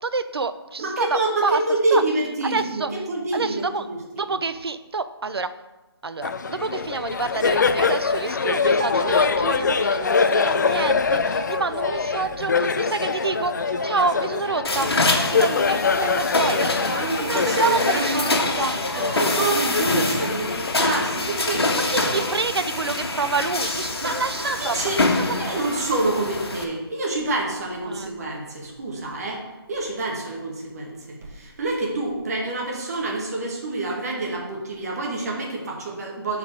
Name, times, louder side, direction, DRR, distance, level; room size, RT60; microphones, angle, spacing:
voice 1, 0.0-1.6 1.9-2.0 2.5-2.9 3.3-3.8 4.2-5.5 6.0-16.7 17.2-19.2 21.9-24.9 25.3-25.6 27.9-28.2, right 4 dB, 75° right, 11 dB, 0.7 m, -28 dB
voice 2, 0.8-4.4 16.9-18.5 18.8-22.3 24.0-25.0 25.4-36.4, right 2 dB, 40° right, -1 dB, 2.0 m, -27 dB
Laughter, 6.2-21.2, left 5 dB, 45° left, 0.5 m, -24 dB
sound 1, 8.8-21.1, right 2 dB, 20° right, 0.4 m, -40 dB
sound 2, 14.6-26.6, left 2 dB, 70° left, 1.6 m, -25 dB
9.0 x 4.8 x 5.1 m, 1.1 s
figure-of-eight pair, 160°, 13 cm